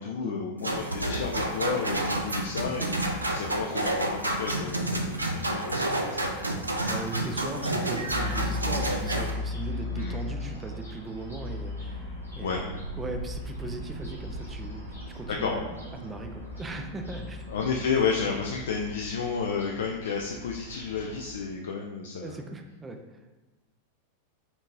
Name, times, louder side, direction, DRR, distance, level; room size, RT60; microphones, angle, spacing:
voice 1, 0.0-3.0 3.3-6.2 9.9-10.2 12.4-12.6 15.3-15.6 17.5-22.4, left 5 dB, 60° left, 0 dB, 0.3 m, -31 dB
sound 1, 0.6-9.3, right 1 dB, 80° right, 0.4 m, -29 dB
voice 2, 6.9-12.1 12.4-17.5 22.2-23.2, right 2 dB, 15° right, 5 dB, 0.4 m, -39 dB
sound 2, 8.1-21.3, left 2 dB, 85° left, 1.0 m, -38 dB
sound 3, 11.7-18.6, left 3 dB, 40° right, 0.9 m, -50 dB
4.3 x 2.8 x 2.7 m, 1.1 s
figure-of-eight pair, 90°, 0 cm